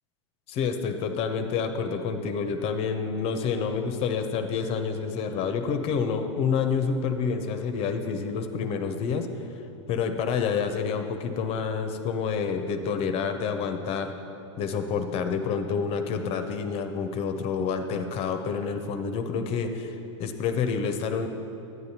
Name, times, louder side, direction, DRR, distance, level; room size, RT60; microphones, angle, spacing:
voice 1, 0.5-9.3 9.9-14.1 14.6-21.3, left 6 dB, 35° left, 7 dB, 0.6 m, -28 dB
10.5 x 9.3 x 2.8 m, 2.9 s
hypercardioid pair, 100°, 16 cm